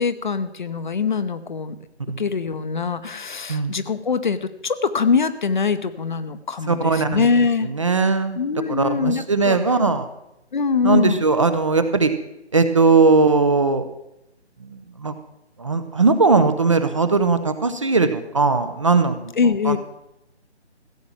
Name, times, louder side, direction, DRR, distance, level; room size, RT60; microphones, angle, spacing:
voice 1, 0.0-1.8 2.1-7.7 8.3-9.6 10.5-11.2 19.3-19.8, left 5 dB, 45° left, 12 dB, 0.8 m, -23 dB
voice 2, 6.7-7.2 7.8-8.4 8.7-10.1 10.8-12.1 12.5-13.9 14.7-15.1 15.6-19.3 19.7-19.8, right 4 dB, 30° right, 10 dB, 0.6 m, -19 dB
15.5 x 7.7 x 7.2 m, 0.87 s
figure-of-eight pair, 160°, 34 cm